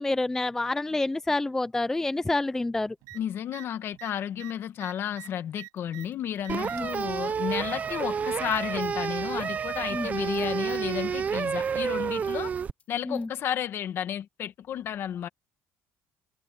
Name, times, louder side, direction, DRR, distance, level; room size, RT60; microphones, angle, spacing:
voice 1, 0.0-3.0 6.7-6.9 9.9-10.1 13.0-13.3, left 2 dB, 10° left, 0.4 m, -28 dB
sound 1, 3.0-3.2 3.5-3.7 3.9-6.1 6.4-7.0 7.9-8.6 9.7-9.8, right 21 dB, 85° right, 7.9 m, -46 dB
voice 2, 3.1-12.5 12.9-15.3, left 10 dB, 45° left, 1.6 m, -32 dB
sound 2, 5.8-13.3, left 3 dB, 30° left, 4.6 m, -60 dB
sound 3, 6.5-12.7, right 6 dB, 30° right, 0.7 m, -30 dB
cardioid pair, 145°, 5 cm